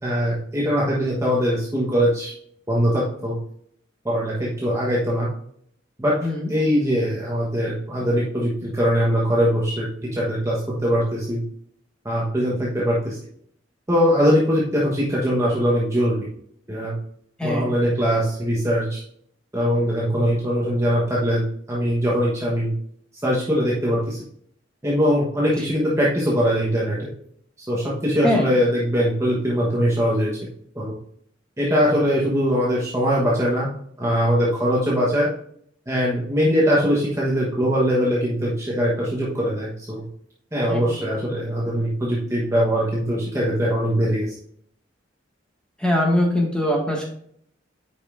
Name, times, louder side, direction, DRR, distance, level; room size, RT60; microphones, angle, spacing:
voice 1, 0.0-2.3 2.7-3.4 4.0-5.3 6.0-6.1 6.5-11.4 12.0-13.2 13.9-16.3 16.7-16.9 17.4-19.0 19.5-22.7 23.2-24.2 24.8-27.1 27.6-30.3 30.7-30.9 31.6-33.7 34.0-35.3 35.9-40.0 40.5-44.3, equal, 15° right, -6 dB, 1.1 m, -21 dB
voice 2, 17.4-17.7 25.6-25.7 28.2-28.5 40.7-41.1 45.8-47.0, left 1 dB, 5° left, -2 dB, 1.7 m, -22 dB
8.4 x 5.2 x 2.5 m, 0.66 s
head